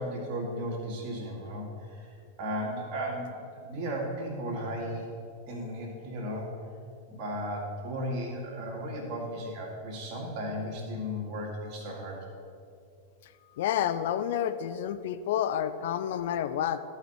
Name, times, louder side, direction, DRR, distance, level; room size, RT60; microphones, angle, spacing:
voice 1, 0.0-5.1 5.5-6.5 7.1-12.2, equal, 40° right, -2 dB, 2.1 m, -35 dB
voice 2, 13.6-16.8, left 10 dB, 55° left, 11 dB, 0.4 m, -29 dB
13.5 x 5.0 x 4.4 m, 2.4 s
figure-of-eight pair, 90°, 0 cm